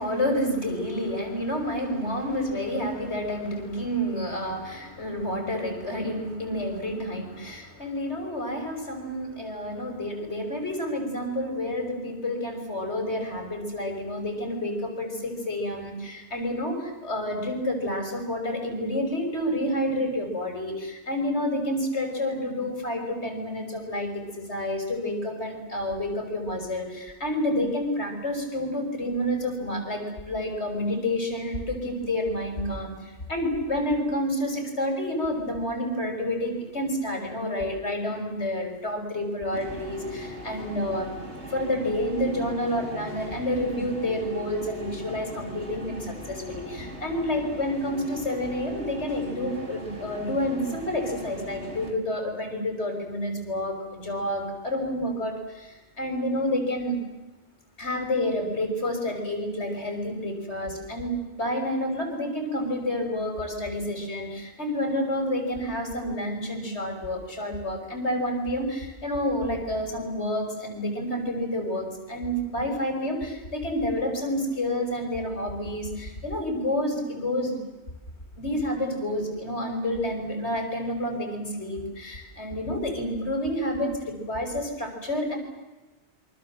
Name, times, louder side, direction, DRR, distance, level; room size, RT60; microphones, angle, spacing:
voice 1, 0.0-57.0 57.8-77.5 78.4-85.4, left 1 dB, 75° left, 4 dB, 6.4 m, -29 dB
sound 1, 39.5-51.9, equal, 80° right, 4.3 m, -39 dB
27.5 x 24.5 x 7.8 m, 1.1 s
omnidirectional pair, 1.1 m